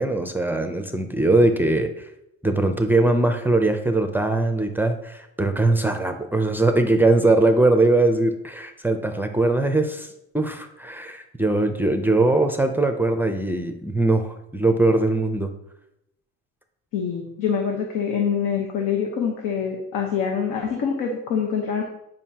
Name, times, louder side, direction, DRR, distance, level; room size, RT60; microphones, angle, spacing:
voice 1, 0.0-2.1 2.4-10.1 10.3-15.5, right 2 dB, 5° right, 5 dB, 0.5 m, -21 dB
voice 2, 16.9-21.8, left 7 dB, 80° left, 2 dB, 1.1 m, -25 dB
9.1 x 5.2 x 2.8 m, 0.83 s
cardioid pair, 135°, 33 cm